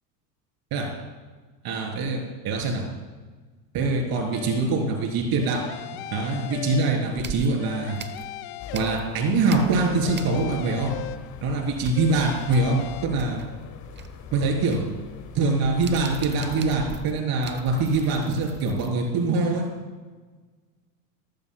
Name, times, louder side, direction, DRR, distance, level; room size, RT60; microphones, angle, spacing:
voice 1, 1.6-2.8 3.7-5.6 6.1-8.0 8.7-10.9 11.4-13.4 14.3-14.8 15.3-19.7, right 3 dB, 45° right, 1 dB, 3.7 m, -24 dB
sound 1, 4.3-4.9 5.4-7.3 7.6-9.4 9.8-11.6 12.0-13.0, left 13 dB, 50° left, 0.8 m, -38 dB
sound 2, 6.2-6.7 7.2-9.2 9.4-10.8 11.0-11.1 11.4-18.9, right 6 dB, 20° right, 0.8 m, -41 dB
sound 3, 8.6-17.0, left 6 dB, 35° left, 1.2 m, -42 dB
18.5 x 14.0 x 2.3 m, 1.4 s
hypercardioid pair, 90°, 49 cm